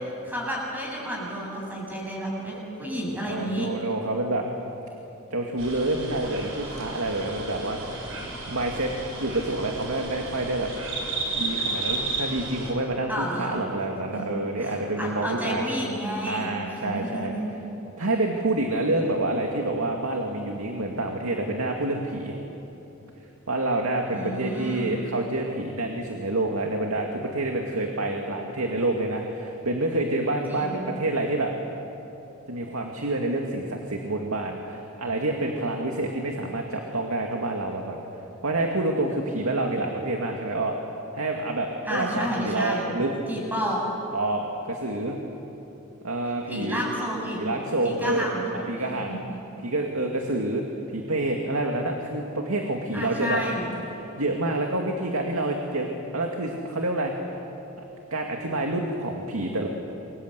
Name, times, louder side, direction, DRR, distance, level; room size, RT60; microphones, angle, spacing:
voice 1, 0.2-3.7 13.1-13.6 14.1-14.3 14.6-17.5 24.1-24.9 30.5-30.9 41.8-42.9 43.3-43.8 46.5-47.4 47.8-48.6 48.9-49.4 52.9-53.7, equal, 10° right, -3 dB, 7.9 m, -31 dB
voice 2, 3.3-4.5 5.3-8.9 9.2-10.7 11.4-15.6 16.3-17.3 18.0-22.4 23.5-31.5 32.5-38.0 38.4-40.7 41.1-43.1 44.1-45.2 46.0-46.8 47.4-48.3 48.5-49.3 49.6-50.6 50.9-53.4 54.2-55.9 56.1-57.1 58.1-59.7, right 2 dB, 85° right, 1 dB, 2.3 m, -28 dB
sound 1, 5.6-12.7, right 3 dB, 70° right, 6.2 m, -33 dB
28.0 x 23.5 x 8.3 m, 3.0 s
head